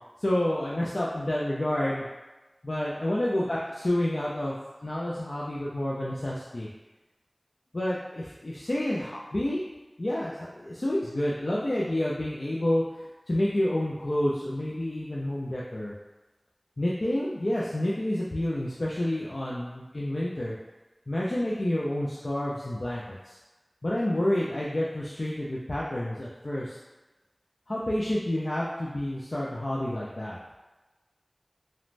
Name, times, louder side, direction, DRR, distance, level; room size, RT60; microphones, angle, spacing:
voice 1, 0.2-2.1 2.6-4.6 4.8-6.7 7.7-9.6 10.0-15.9 16.8-20.6 21.1-23.4 23.8-26.8 27.7-30.4, left 1 dB, 85° left, -6 dB, 0.3 m, -29 dB
2.5 x 2.1 x 3.1 m, 1.1 s
wide cardioid pair, 40°, 0 cm